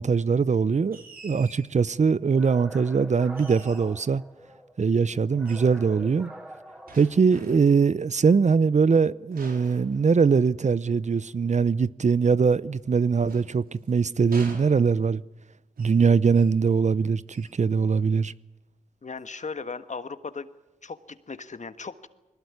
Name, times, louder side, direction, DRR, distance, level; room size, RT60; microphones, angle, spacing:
voice 1, 0.0-4.2 4.8-6.3 6.9-15.2 15.8-18.3, right 5 dB, 50° right, 0.7 m, -22 dB
sound 1, 0.9-1.7 3.3-4.0 5.4-5.8 6.9-7.8 9.3-10.6 12.8-13.9 14.3-15.2 15.8-16.0 16.3-16.6 17.3-17.6, right 3 dB, 80° right, 4.6 m, -47 dB
sound 2, 2.3-4.7 5.3-7.7, equal, 5° right, 4.4 m, -44 dB
voice 2, 19.0-20.5 20.8-22.1, left 4 dB, 55° left, 1.5 m, -37 dB
21.0 x 19.0 x 9.7 m
cardioid pair, 45°, 15 cm